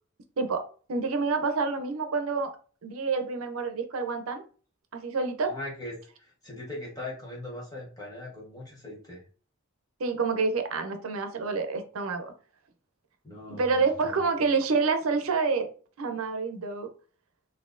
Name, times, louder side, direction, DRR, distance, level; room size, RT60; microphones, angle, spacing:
voice 1, 0.9-2.5 2.8-4.4 4.9-5.5 10.0-12.3 13.5-15.7 16.0-16.9, right 4 dB, 85° right, 7 dB, 0.6 m, -28 dB
voice 2, 5.4-9.2 13.2-14.2, left 1 dB, 15° left, -4 dB, 1.0 m, -40 dB
4.1 x 2.6 x 2.5 m, 0.40 s
head